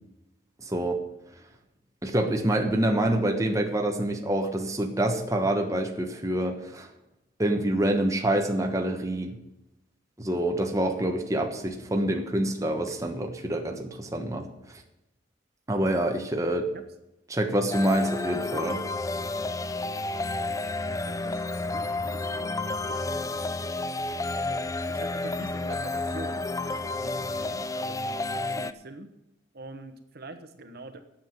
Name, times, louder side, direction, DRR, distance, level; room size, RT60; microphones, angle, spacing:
voice 1, 0.6-1.0 2.0-6.9 7.4-9.4 10.2-14.5 15.7-16.7 17.3-18.8, right 1 dB, 15° right, 3 dB, 1.2 m, -26 dB
sound 1, 17.7-28.7, left 2 dB, 15° left, 0.5 m, -31 dB
voice 2, 20.9-23.8 24.3-24.6 24.9-29.1 29.5-31.0, right 2 dB, 55° right, 7 dB, 1.2 m, -45 dB
9.4 x 7.6 x 8.9 m, 0.89 s
head